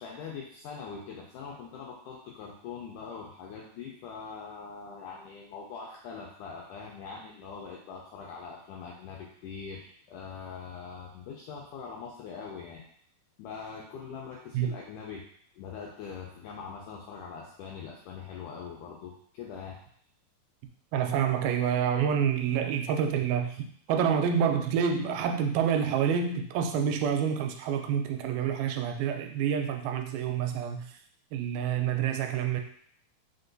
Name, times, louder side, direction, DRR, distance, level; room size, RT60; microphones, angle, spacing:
voice 1, 0.0-12.8 13.4-15.3 15.6-19.8, left 6 dB, 90° left, -2 dB, 1.7 m, -42 dB
voice 2, 20.9-23.5 23.9-30.9 31.3-32.6, right 8 dB, 85° right, 5 dB, 2.3 m, -27 dB
5.6 x 2.2 x 3.8 m, 0.63 s
omnidirectional pair, 4.2 m